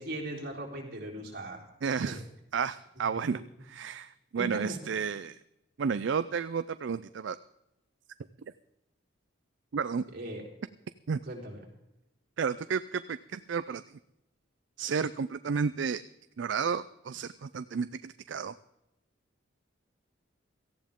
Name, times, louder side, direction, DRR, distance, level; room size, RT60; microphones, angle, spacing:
voice 1, 0.0-2.2 3.0-3.1 3.3-3.4 4.4-4.8 10.1-10.4 11.3-11.6, right 1 dB, 50° right, -1 dB, 3.8 m, -39 dB
voice 2, 1.8-2.2 2.5-5.4 5.8-7.4 9.7-10.0 11.1-11.2 12.4-13.8 14.8-16.0 16.4-18.5, right 6 dB, 65° right, 13 dB, 0.4 m, -32 dB
18.0 x 14.5 x 3.7 m, 0.89 s
head